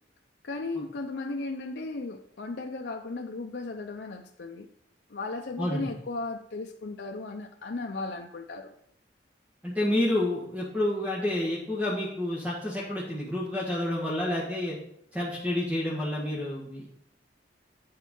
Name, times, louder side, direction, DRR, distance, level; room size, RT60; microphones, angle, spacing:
voice 1, 0.4-4.7 5.1-8.7, left 3 dB, 65° left, 2 dB, 0.6 m, -36 dB
voice 2, 5.6-5.9 9.6-14.8 15.1-16.9, left 1 dB, 10° right, -5 dB, 1.5 m, -29 dB
8.7 x 4.5 x 5.4 m, 0.73 s
head